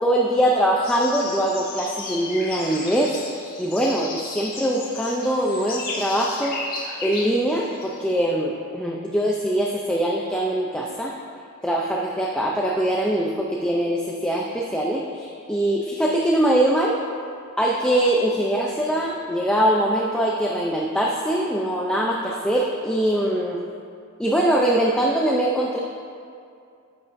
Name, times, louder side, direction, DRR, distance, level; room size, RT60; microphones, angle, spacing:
voice 1, 0.0-3.2 3.6-6.6 7.0-11.1 11.6-17.0 17.6-23.6 24.2-25.8, right 1 dB, 5° left, -2 dB, 0.5 m, -22 dB
sound 1, 0.8-8.3, left 3 dB, 45° left, 1.6 m, -34 dB
11.0 x 8.0 x 2.6 m, 2.4 s
head